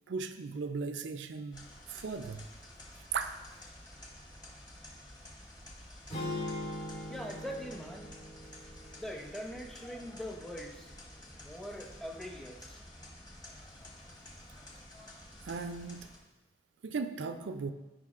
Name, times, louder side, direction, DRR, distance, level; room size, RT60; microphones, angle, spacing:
voice 1, 0.1-2.5 3.1-3.4 15.4-16.1 16.8-17.7, right 5 dB, 85° right, 10 dB, 0.5 m, -37 dB
sound 1, 1.5-16.2, left 1 dB, 20° left, 1.0 m, -51 dB
sound 2, 6.1-10.3, left 1 dB, 75° left, 2.7 m, -42 dB
voice 2, 7.1-8.1 9.0-10.9 11.4-12.8, equal, ahead, 1 dB, 0.7 m, -42 dB
13.5 x 5.0 x 2.4 m, 1.1 s
head